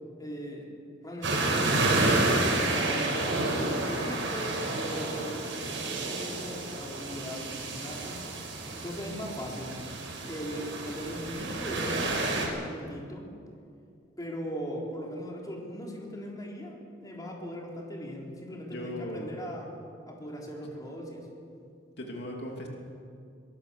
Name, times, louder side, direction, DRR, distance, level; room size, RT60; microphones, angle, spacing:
voice 1, 0.2-0.7 1.0-2.1 2.6-8.2 8.7-9.8 10.3-13.3 14.2-19.7 20.1-21.3, equal, 20° left, -2 dB, 4.1 m, -39 dB
sound 1, 1.2-12.5, right 2 dB, 85° right, 5.8 m, -30 dB
voice 2, 18.7-19.3 22.0-22.7, left 1 dB, 60° left, 0 dB, 3.0 m, -37 dB
23.0 x 20.5 x 7.1 m, 2.4 s
head